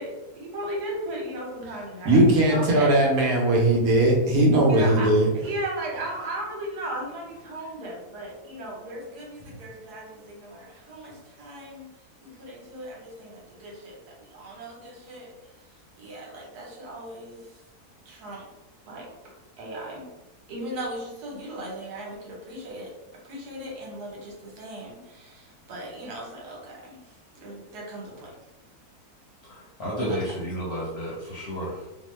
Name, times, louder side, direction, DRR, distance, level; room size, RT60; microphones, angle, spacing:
voice 1, 0.0-3.1 4.7-11.9 12.2-15.3 16.0-17.5 18.0-18.4 18.9-19.1 19.6-20.0 20.5-22.9 23.2-27.0 27.4-28.3 30.0-30.2, right 1 dB, 80° right, -2 dB, 1.4 m, -36 dB
voice 2, 2.0-5.3, right 1 dB, 65° right, -2 dB, 1.1 m, -19 dB
voice 3, 29.4-31.9, equal, 55° left, -5 dB, 0.8 m, -32 dB
3.0 x 2.1 x 3.0 m, 1.0 s
omnidirectional pair, 1.7 m